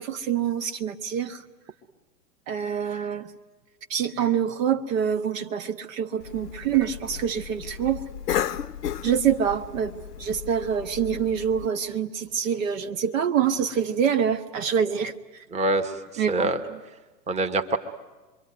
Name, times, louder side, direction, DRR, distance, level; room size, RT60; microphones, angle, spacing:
voice 1, 0.0-1.4 2.5-3.3 3.9-8.0 9.0-15.1 16.2-16.5, right 8 dB, 55° right, 8 dB, 1.4 m, -26 dB
Cough, 6.2-11.7, left 10 dB, 70° left, 0.9 m, -34 dB
voice 2, 15.5-16.6 17.3-17.8, right 2 dB, 15° right, 6 dB, 1.4 m, -25 dB
26.5 x 23.0 x 9.5 m, 1.2 s
hypercardioid pair, 110°, 49 cm